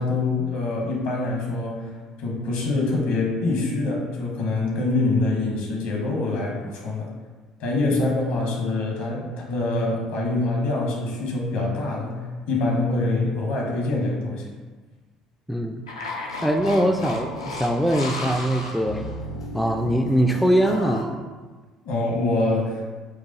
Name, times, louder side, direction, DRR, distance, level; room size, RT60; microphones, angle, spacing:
voice 1, 0.0-1.9 2.2-7.1 7.6-14.5 21.8-22.8, left 2 dB, 65° left, -1 dB, 1.0 m, -25 dB
voice 2, 15.5-15.8 16.4-19.1 19.5-21.2, equal, ahead, 4 dB, 0.3 m, -22 dB
sound 1, 15.9-21.0, left 2 dB, 80° left, 0.5 m, -33 dB
4.6 x 2.4 x 4.1 m, 1.4 s
figure-of-eight pair, 55°, 3 cm